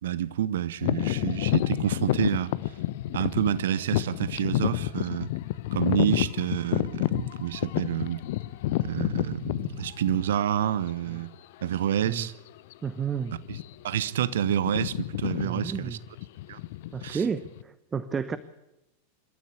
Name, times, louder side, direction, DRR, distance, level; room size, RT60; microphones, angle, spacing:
voice 1, 0.0-2.6 3.1-5.3 5.7-8.2 8.8-11.3 11.6-12.3 13.5-13.6 13.8-16.0 16.5-16.6 17.0-17.2, right 10 dB, 60° right, 0.9 m, -28 dB
sound 1, 0.8-10.6 11.2-11.3 12.0-12.2 12.5-12.7 13.4-13.9 14.2-17.6, left 16 dB, 50° left, 0.7 m, -29 dB
voice 2, 12.8-13.4 15.4-16.0 16.9-18.4, right 6 dB, 20° right, 0.9 m, -31 dB
27.0 x 13.5 x 8.3 m
figure-of-eight pair, 90°, 0 cm